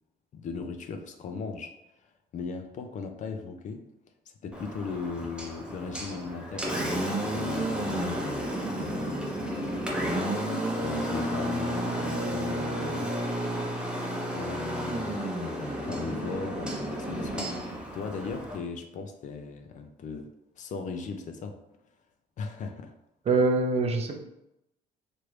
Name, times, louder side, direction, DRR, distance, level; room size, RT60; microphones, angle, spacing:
voice 1, 0.3-3.9 4.4-10.1 10.8-13.2 14.3-17.5 17.9-20.3 20.6-21.6 22.4-22.9 23.3-23.4, left 4 dB, 45° left, 6 dB, 0.4 m, -38 dB
Engine, 4.5-18.6, right 1 dB, 5° right, 0.7 m, -32 dB
voice 2, 23.3-24.2, right 3 dB, 40° right, 3 dB, 0.5 m, -24 dB
3.0 x 2.5 x 3.1 m, 0.86 s
cardioid pair, 110°, 17 cm